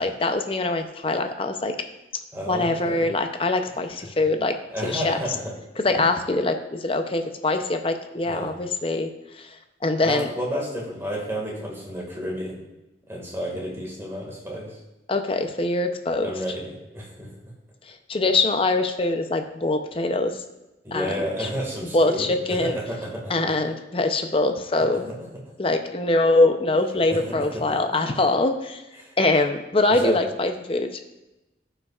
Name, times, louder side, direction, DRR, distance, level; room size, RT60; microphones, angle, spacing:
voice 1, 0.0-1.7 2.5-4.5 4.8-5.2 5.8-9.5 9.8-10.3 15.1-16.3 17.9-20.4 20.9-21.5 21.9-22.7 23.3-25.1 25.6-28.8 29.2-30.9, left 2 dB, 30° left, 6 dB, 0.6 m, -23 dB
voice 2, 2.3-3.1 4.0-4.1 4.7-5.5 8.3-8.5 10.0-12.6 13.1-14.8 16.2-17.3 20.8-23.3 25.0-25.2 27.1-27.9 29.0-29.1 29.9-30.1, equal, 15° right, -2 dB, 1.9 m, -31 dB
15.0 x 5.6 x 2.4 m, 1.0 s
head